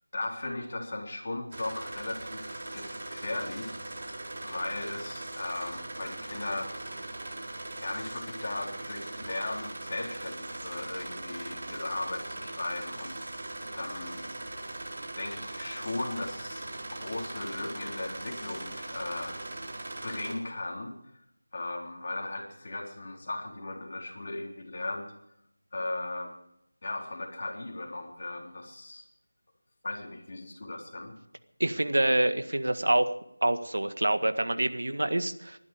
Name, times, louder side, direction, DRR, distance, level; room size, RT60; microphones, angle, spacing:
voice 1, 0.1-6.7 7.8-13.2 13.7-14.4 15.2-16.6 16.9-19.4 20.0-21.0 21.5-25.1 25.7-26.3 26.8-29.0 29.8-31.2, left 2 dB, 40° left, 0 dB, 3.8 m, -37 dB
sound 1, 1.5-20.3, right 2 dB, 45° right, 3.9 m, -40 dB
voice 2, 31.6-33.1 33.4-35.6, right 1 dB, 70° right, 10 dB, 1.7 m, -26 dB
21.0 x 12.0 x 5.1 m, 0.79 s
figure-of-eight pair, 170°, 0 cm